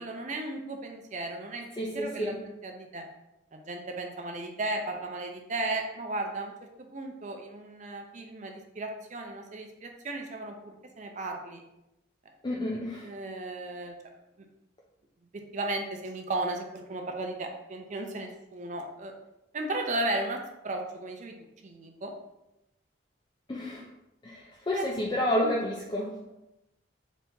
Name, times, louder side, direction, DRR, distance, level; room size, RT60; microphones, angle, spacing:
voice 1, 0.0-3.0 3.5-6.5 6.8-11.6 12.5-12.6 13.0-13.9 15.5-19.1 19.5-20.4 20.6-21.3 21.6-22.1 24.7-24.8 25.4-25.5, right 2 dB, 40° right, 3 dB, 0.5 m, -35 dB
voice 2, 1.8-2.4 12.4-13.1 23.5-23.8 24.2-26.2, left 1 dB, 25° left, -3 dB, 0.3 m, -30 dB
4.0 x 2.8 x 3.5 m, 0.90 s
head